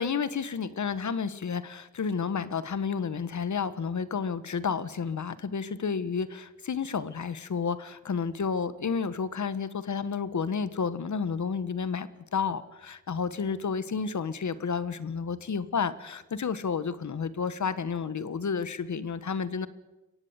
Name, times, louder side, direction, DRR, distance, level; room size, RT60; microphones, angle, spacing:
voice 1, 0.0-19.7, left 6 dB, 60° left, 15 dB, 1.2 m, -31 dB
22.5 x 17.0 x 8.1 m, 1.1 s
cardioid pair, 75°, 33 cm